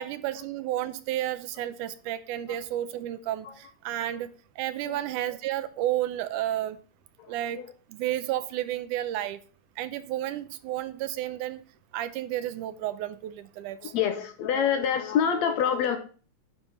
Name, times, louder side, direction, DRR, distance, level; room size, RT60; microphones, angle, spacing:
voice 1, 0.0-4.3 4.6-6.8 7.3-7.6 7.9-9.4 9.8-11.6 11.9-13.9, right 13 dB, 85° right, 12 dB, 2.1 m, -31 dB
voice 2, 7.2-7.7 13.8-16.0, left 8 dB, 70° left, 7 dB, 1.9 m, -27 dB
10.0 x 4.6 x 5.3 m, 0.40 s
omnidirectional pair, 3.6 m